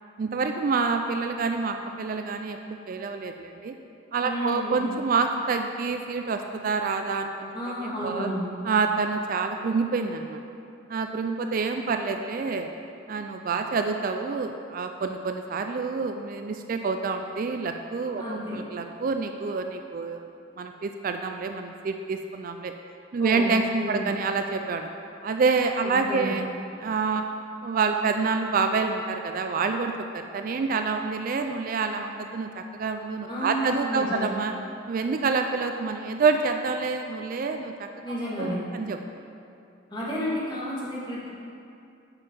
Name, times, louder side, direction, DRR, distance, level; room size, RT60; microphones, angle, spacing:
voice 1, 0.2-3.7 4.1-8.3 8.6-10.4 10.9-12.7 13.1-20.3 20.6-22.7 23.1-24.9 25.2-26.4 26.8-27.2 27.6-34.5 34.9-39.0, right 4 dB, 45° right, 5 dB, 0.3 m, -27 dB
voice 2, 4.2-4.9 7.5-8.5 18.2-18.6 23.2-23.5 23.8-24.1 25.8-26.3 33.3-34.3 38.0-38.6 39.9-41.3, equal, 25° left, -7 dB, 1.9 m, -31 dB
8.2 x 5.4 x 5.3 m, 2.6 s
head